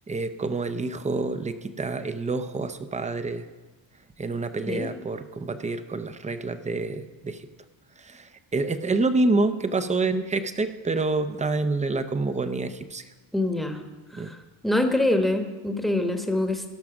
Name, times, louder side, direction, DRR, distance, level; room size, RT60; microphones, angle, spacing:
voice 1, 0.1-3.4 4.2-7.5 8.0-13.0 14.1-14.3, right 3 dB, 15° right, 10 dB, 0.6 m, -27 dB
voice 2, 13.3-13.8 14.1-14.4 14.6-16.6, left 1 dB, ahead, 5 dB, 1.1 m, -25 dB
17.5 x 5.9 x 6.0 m, 1.3 s
cardioid pair, 120°, 48 cm